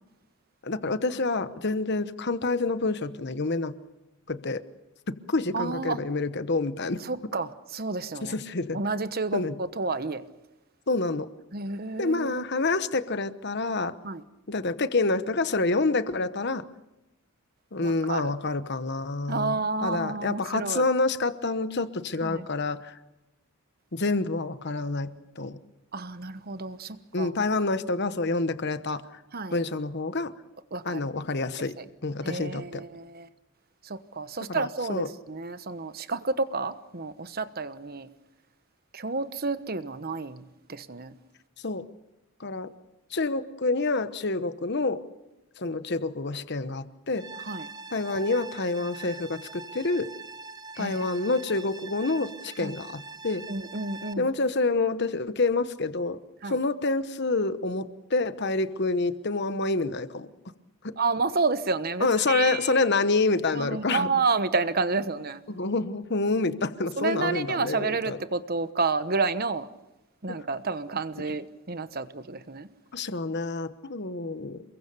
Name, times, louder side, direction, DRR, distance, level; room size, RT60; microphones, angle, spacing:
voice 1, 0.6-3.8 4.3-4.6 5.1-7.0 8.2-8.8 9.3-9.5 10.9-11.3 12.0-13.9 14.5-16.7 17.7-23.0 23.9-25.6 27.1-29.1 29.5-30.3 30.8-31.7 32.0-32.8 34.5-35.1 41.6-41.8 42.4-42.7 43.1-45.0 45.6-47.3 47.9-50.1 50.8-53.4 54.2-56.2 56.4-60.3 60.8-61.0 62.0-64.1 65.5-68.2 70.3-70.4 72.9-74.6, left 3 dB, 50° left, 1.1 m, -27 dB
voice 2, 5.5-6.0 7.0-8.3 8.7-10.2 11.5-12.5 14.0-14.2 17.8-18.3 19.3-20.8 22.2-22.4 25.9-27.3 29.3-29.6 30.7-31.0 31.8-31.9 32.2-33.3 33.8-38.1 38.9-41.1 47.4-47.7 50.8-51.0 52.6-52.7 53.5-54.3 56.4-56.6 61.0-62.8 63.5-65.4 67.0-69.7 70.2-72.7, right 3 dB, 45° right, 1.1 m, -30 dB
sound 1, 47.2-54.1, right 4 dB, 20° right, 0.9 m, -43 dB
29.0 x 22.0 x 6.9 m
head